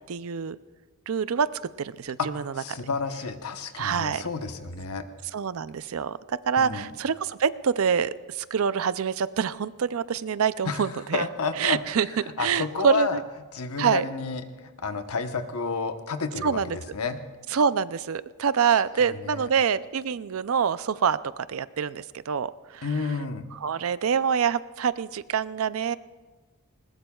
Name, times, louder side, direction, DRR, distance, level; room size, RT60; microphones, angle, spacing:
voice 1, 0.1-0.6 1.1-2.5 3.8-4.3 5.3-11.2 11.6-12.1 12.4-13.2 13.8-14.0 16.4-16.8 17.5-22.9 23.6-26.0, right 7 dB, 70° right, 16 dB, 0.5 m, -26 dB
voice 2, 2.2-5.0 6.6-6.9 10.7-11.8 12.4-13.2 13.5-16.6 16.9-17.2 19.2-19.5 22.8-23.4, left 4 dB, 80° left, 7 dB, 1.0 m, -30 dB
20.5 x 20.0 x 2.3 m, 1.3 s
head